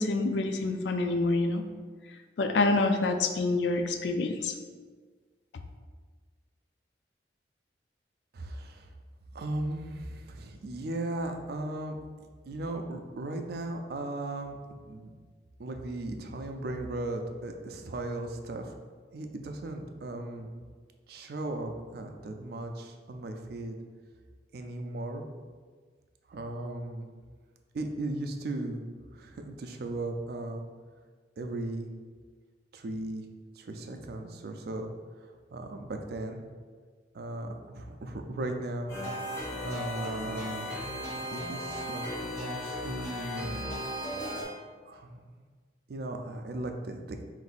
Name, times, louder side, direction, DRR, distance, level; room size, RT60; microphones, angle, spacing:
voice 1, 0.0-1.6 2.4-4.5, left 3 dB, 75° left, 7 dB, 0.4 m, -27 dB
voice 2, 8.3-8.9 9.3-12.0 12.4-14.6 14.8-15.1 15.6-18.7 19.1-20.5 21.1-23.8 24.5-25.2 26.3-27.1 27.7-28.8 29.1-30.6 31.4-31.9 32.7-33.2 33.6-34.9 35.5-36.4 37.1-38.9 39.2-39.4 39.6-40.7 41.1-43.6 44.9-45.2 45.9-47.2, right 2 dB, 60° right, 5 dB, 0.4 m, -37 dB
sound 1, 38.9-44.4, left 1 dB, 15° left, 0.9 m, -36 dB
3.7 x 2.6 x 4.1 m, 1.5 s
head